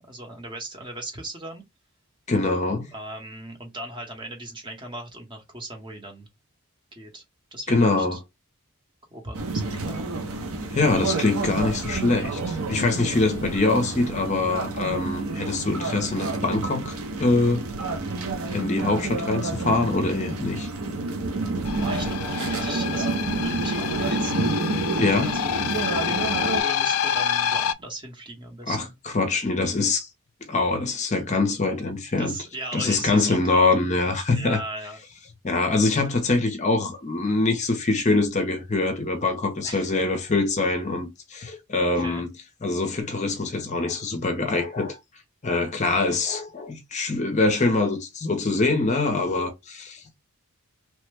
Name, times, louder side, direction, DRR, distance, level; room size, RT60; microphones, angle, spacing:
voice 1, 0.1-1.6 2.9-6.3 6.9-7.2 7.5-8.2 9.1-10.2 21.7-24.5 24.9-28.9 32.2-33.7 34.3-35.0 39.6-40.0 41.9-42.2, right 1 dB, 20° right, 0.8 m, -38 dB
voice 2, 2.3-2.9 7.7-8.2 10.7-17.7 18.5-20.7 25.0-25.4 28.7-28.8 29.1-30.1 30.5-32.4 32.7-34.6 35.4-42.3 42.6-45.0 45.4-50.2, left 3 dB, 30° left, 0.6 m, -24 dB
sound 1, 9.3-26.6, right 3 dB, 75° right, 0.7 m, -29 dB
sound 2, 21.7-27.7, left 8 dB, 80° left, 0.3 m, -27 dB
3.1 x 2.1 x 3.3 m
head